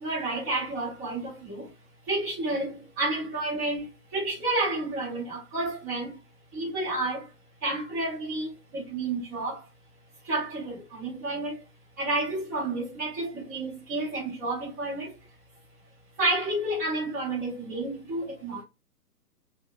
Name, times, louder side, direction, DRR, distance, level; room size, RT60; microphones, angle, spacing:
voice 1, 0.0-1.7 2.1-6.1 6.5-7.2 7.6-8.5 8.7-9.6 10.3-11.6 12.0-15.1 16.2-18.6, right 2 dB, 10° right, 0.6 m, -30 dB
2.6 x 2.0 x 2.3 m
figure-of-eight pair, 125°, 47 cm